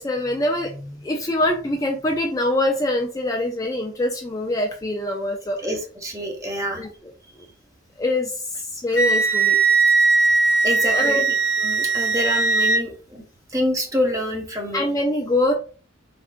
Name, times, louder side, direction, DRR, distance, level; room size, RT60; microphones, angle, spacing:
voice 1, 0.0-5.8 6.8-6.9 8.0-9.6 10.9-11.2 14.7-15.5, left 1 dB, 20° left, 1 dB, 0.3 m, -24 dB
voice 2, 5.6-6.8 10.6-11.2 11.6-13.2 13.5-14.8, equal, 15° right, 2 dB, 0.6 m, -26 dB
Wind instrument woodwind instrument, 8.9-12.8, right 4 dB, 60° left, 0.7 m, -19 dB
3.5 x 2.4 x 2.5 m, 0.39 s
head